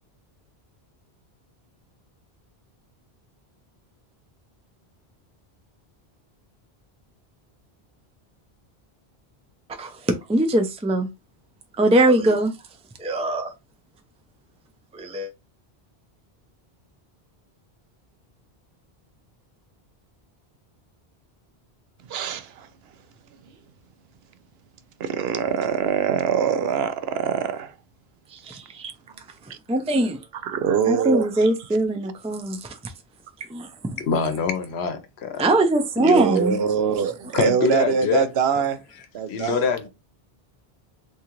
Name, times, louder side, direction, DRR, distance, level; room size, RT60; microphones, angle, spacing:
voice 1, 9.8-11.1 11.8-12.5 13.0-13.5 14.9-15.3 28.3-28.9 29.7-30.2 30.9-32.8 33.5-33.7 35.4-36.6, right 1 dB, 10° right, 0.3 m, -21 dB
voice 2, 22.1-22.7 25.0-27.7 29.5-29.6 30.4-31.5 36.0-38.8 39.1-39.9, right 7 dB, 80° right, 0.8 m, -24 dB
voice 3, 34.0-35.4 37.3-38.3 38.6-38.7 39.3-39.9, left 5 dB, 85° left, 1.0 m, -24 dB
3.7 x 2.8 x 2.9 m
omnidirectional pair, 1.1 m